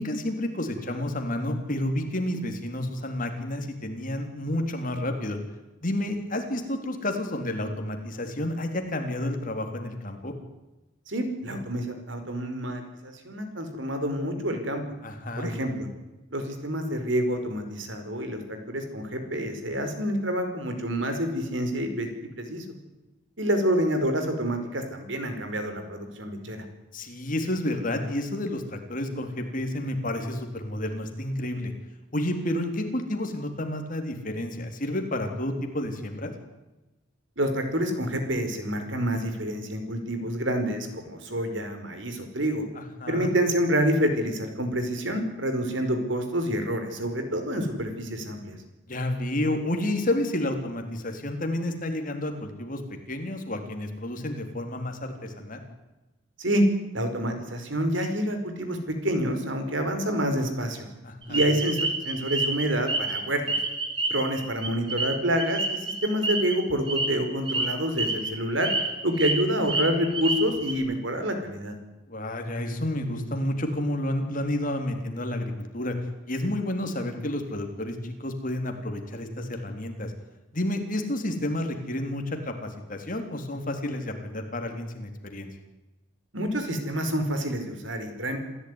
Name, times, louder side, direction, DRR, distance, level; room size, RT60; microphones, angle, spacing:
voice 1, 0.0-5.4 5.8-10.3 15.0-15.5 26.9-31.7 32.1-36.3 43.0-43.3 48.9-52.8 53.1-55.6 61.0-61.4 72.1-75.9 76.3-80.1 80.5-85.5, left 1 dB, 40° left, 5 dB, 3.7 m, -30 dB
voice 2, 11.1-14.8 15.4-15.9 16.3-22.6 23.4-26.6 37.4-42.6 43.1-48.6 56.4-56.6 56.9-60.9 61.3-63.6 64.1-68.7 69.0-71.7 86.3-88.4, equal, 65° right, 7 dB, 4.9 m, -28 dB
sound 1, 61.3-63.2 63.5-66.5 66.9-67.1 67.5-67.7 68.0-68.3 68.6-69.3 69.6-70.7, right 2 dB, 25° right, 4.7 m, -28 dB
28.0 x 15.0 x 9.9 m, 1.1 s
head